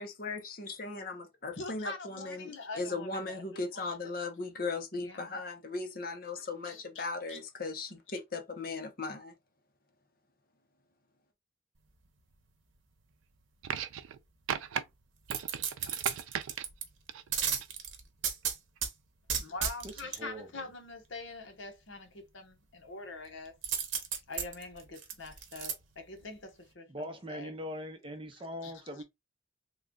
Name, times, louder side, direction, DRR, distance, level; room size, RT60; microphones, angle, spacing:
voice 1, 0.0-2.5 2.8-9.3, left 3 dB, 45° left, 0.7 m, -38 dB
voice 2, 1.5-4.0 5.0-5.4 6.4-7.4 19.4-23.6 24.3-27.5 28.6-29.0, left 3 dB, 70° left, 1.0 m, -45 dB
sound 1, 13.6-14.2 14.5-14.8 15.3-16.7 17.1-17.7 18.8-18.9, right 8 dB, 90° right, 0.4 m, -37 dB
sound 2, 15.3-16.8 17.3-18.9 19.3-20.2 23.6-25.7 26.2-26.3, right 7 dB, 70° right, 0.9 m, -33 dB
voice 3, 19.8-20.5 26.9-29.0, equal, 25° right, 0.6 m, -41 dB
3.2 x 2.3 x 3.7 m
head